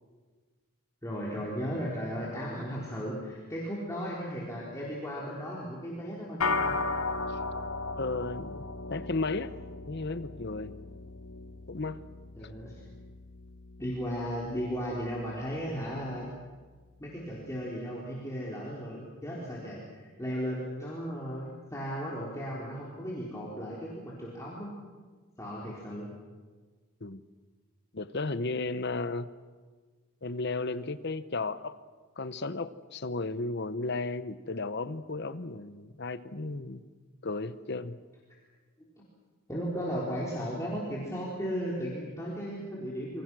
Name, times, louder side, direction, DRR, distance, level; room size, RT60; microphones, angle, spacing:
voice 1, 1.0-6.7 12.4-12.8 13.8-16.3 17.0-24.7 25.4-26.1 39.5-43.2, equal, 15° left, -5 dB, 3.9 m, -36 dB
sound 1, 6.4-15.9, left 3 dB, 80° left, 1.2 m, -36 dB
voice 2, 8.0-9.5 9.9-10.7 11.7-12.0 27.0-27.2 27.9-29.3 30.2-31.8 32.2-36.8 37.2-38.0, left 3 dB, 50° left, 13 dB, 0.9 m, -34 dB
28.0 x 23.5 x 6.2 m, 1.4 s
head